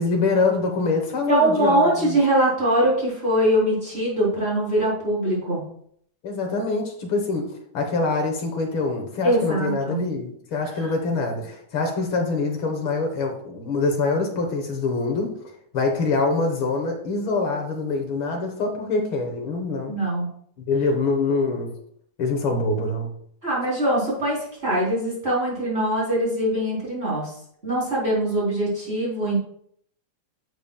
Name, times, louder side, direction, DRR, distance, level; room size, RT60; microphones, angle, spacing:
voice 1, 0.0-2.2 6.2-15.4 15.7-20.0 20.7-21.7 22.2-23.1, left 3 dB, 60° left, 3 dB, 1.5 m, -24 dB
voice 2, 1.3-5.6 9.2-10.0 10.8-10.9 19.9-20.3 23.4-27.3 27.6-29.4, right 1 dB, 20° right, -6 dB, 3.7 m, -22 dB
10.5 x 7.1 x 2.3 m, 0.66 s
omnidirectional pair, 3.4 m